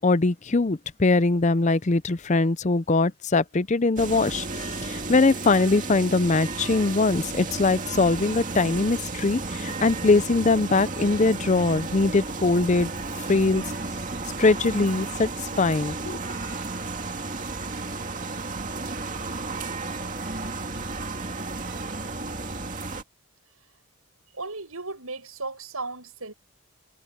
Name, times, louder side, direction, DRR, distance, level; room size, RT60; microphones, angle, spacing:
voice 1, 0.0-12.9 13.3-13.6 14.4-15.3 15.6-16.2, left 3 dB, 30° left, 0.5 m, -22 dB
sound 1, 4.0-23.0, right 3 dB, 35° right, 2.3 m, -33 dB
voice 2, 24.3-26.3, right 3 dB, 75° right, 7.3 m, -35 dB
head